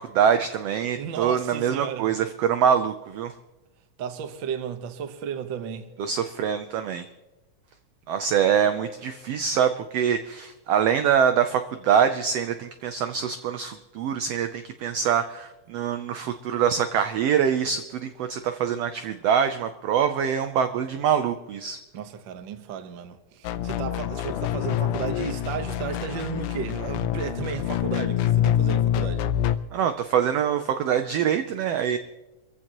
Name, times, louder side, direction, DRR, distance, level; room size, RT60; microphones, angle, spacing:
voice 1, 0.0-3.3 6.0-7.0 8.1-21.8 29.7-32.0, right 8 dB, 75° right, 1.5 m, -24 dB
voice 2, 0.9-2.1 4.0-5.9 21.9-29.3, right 7 dB, 60° right, 1.2 m, -34 dB
sound 1, 23.4-29.6, left 10 dB, 85° left, 2.1 m, -26 dB
26.5 x 15.0 x 3.0 m
omnidirectional pair, 3.5 m